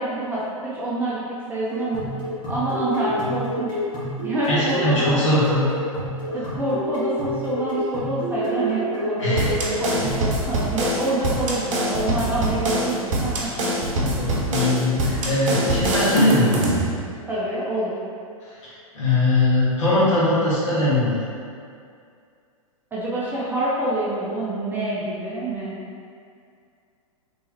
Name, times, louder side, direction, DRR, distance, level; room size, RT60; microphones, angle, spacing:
voice 1, 0.0-2.1 2.5-3.7 4.2-5.2 6.3-13.7 14.0-14.1 17.3-18.0 22.9-25.8, right 2 dB, 10° right, -8 dB, 0.6 m, -26 dB
sound 1, 1.7-10.2, equal, 25° left, 1.2 m, -29 dB
voice 2, 4.5-5.6 9.2-9.5 14.0-16.5 18.6-21.2, left 2 dB, 60° left, -9 dB, 1.4 m, -21 dB
sound 2, 9.4-16.9, right 1 dB, 60° right, 0.7 m, -24 dB
3.4 x 3.0 x 2.9 m, 2.3 s
figure-of-eight pair, 105°, 18 cm